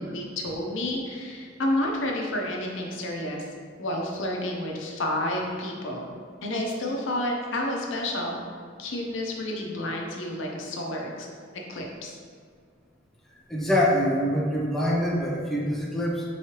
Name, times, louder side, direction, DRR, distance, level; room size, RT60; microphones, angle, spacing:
voice 1, 0.1-3.5 3.8-6.1 6.4-8.4 8.8-11.3 11.7-12.2, left 1 dB, 80° left, 0 dB, 0.7 m, -30 dB
voice 2, 13.5-16.2, equal, ahead, -5 dB, 0.5 m, -24 dB
4.7 x 3.1 x 2.9 m, 2.1 s
head